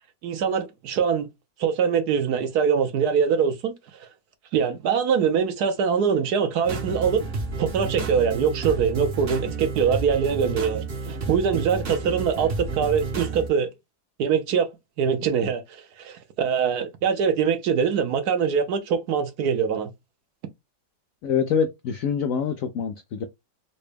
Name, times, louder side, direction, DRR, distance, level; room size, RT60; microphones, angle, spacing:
voice 1, 0.2-1.3 1.6-3.7 4.0-4.1 4.5-7.2 7.6-13.7 14.2-14.7 15.0-19.9, right 7 dB, 70° right, 1.1 m, -23 dB
sound 1, 6.6-13.5, right 4 dB, 45° right, 0.7 m, -31 dB
voice 2, 21.2-23.2, left 7 dB, 85° left, 0.7 m, -25 dB
4.0 x 2.2 x 3.2 m
omnidirectional pair, 2.0 m